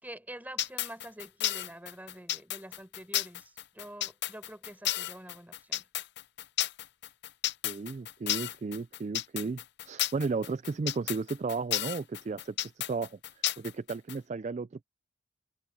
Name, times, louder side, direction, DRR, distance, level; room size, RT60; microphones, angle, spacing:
voice 1, 0.0-5.9, right 1 dB, 10° right, 4.9 m, -47 dB
sound 1, 0.6-14.2, left 13 dB, 55° left, 0.6 m, -32 dB
voice 2, 7.6-9.6 9.9-14.8, right 4 dB, 35° right, 0.3 m, -34 dB
head